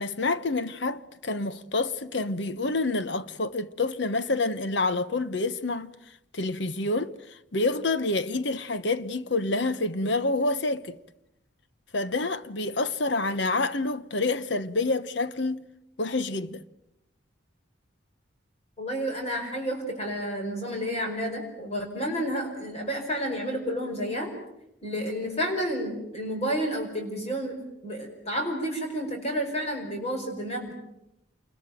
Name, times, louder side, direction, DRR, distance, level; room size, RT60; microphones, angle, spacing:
voice 1, 0.0-5.9 6.3-11.0 11.9-15.6 16.0-16.6, left 2 dB, 60° left, 1.1 m, -28 dB
voice 2, 18.8-24.3 24.8-30.7, equal, 35° left, 5.0 m, -30 dB
28.0 x 22.0 x 9.1 m
head